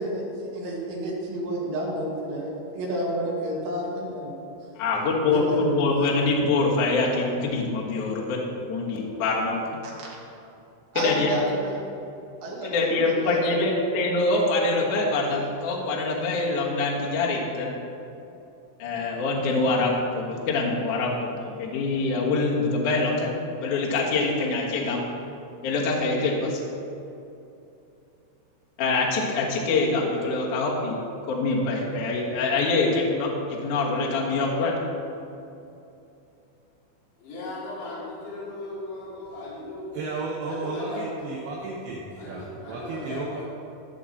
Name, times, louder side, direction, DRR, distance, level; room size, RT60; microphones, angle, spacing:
voice 1, 0.0-4.3 5.3-6.1 10.9-11.8 12.4-13.4, right 1 dB, 65° right, -4 dB, 4.1 m, -30 dB
voice 2, 4.8-9.7 10.9-11.4 12.6-17.7 18.8-25.1 25.6-26.6 28.8-31.0 31.3-34.7, left 3 dB, 80° left, -3 dB, 1.8 m, -25 dB
voice 3, 37.2-40.0 40.5-41.0 42.2-43.4, left 2 dB, 65° left, -8 dB, 5.0 m, -37 dB
voice 4, 39.9-43.4, right 3 dB, 90° right, -3 dB, 2.2 m, -33 dB
15.5 x 6.3 x 4.2 m, 2.7 s
omnidirectional pair, 5.8 m